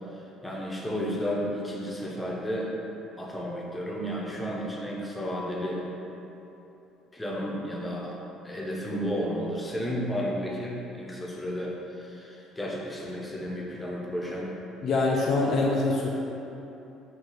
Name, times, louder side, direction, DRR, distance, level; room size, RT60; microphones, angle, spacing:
voice 1, 0.4-2.7 3.2-5.8 7.1-8.2 8.4-14.5, equal, 10° left, -4 dB, 0.7 m, -32 dB
voice 2, 14.8-16.1, left 3 dB, 55° left, -3 dB, 0.3 m, -24 dB
3.7 x 2.3 x 3.1 m, 3.0 s
hypercardioid pair, 55°, 0 cm